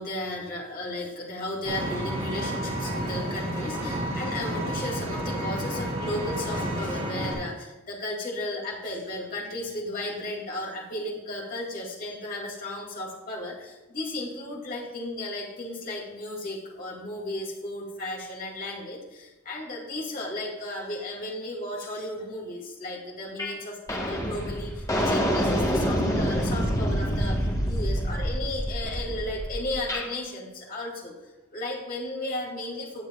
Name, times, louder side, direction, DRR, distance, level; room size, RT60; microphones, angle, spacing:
voice 1, 0.0-33.1, left 1 dB, 45° left, -2 dB, 2.5 m, -34 dB
Vehicle, 1.7-7.3, right 1 dB, 35° right, 3.5 m, -31 dB
sound 1, 23.4-23.6 23.9-30.1, equal, 15° left, 1.3 m, -27 dB
17.0 x 7.2 x 2.4 m, 1.1 s
head